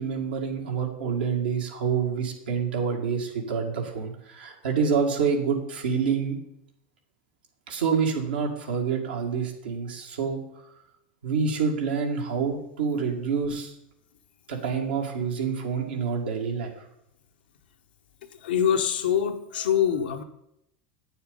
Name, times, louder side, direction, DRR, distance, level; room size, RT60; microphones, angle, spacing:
voice 1, 0.0-6.4 7.7-10.4 11.2-13.7 14.5-16.7, right 6 dB, 90° right, 1 dB, 1.9 m, -27 dB
voice 2, 18.3-20.2, left 9 dB, 85° left, 5 dB, 1.1 m, -24 dB
8.9 x 7.0 x 5.3 m, 0.80 s
hypercardioid pair, 105°, 5 cm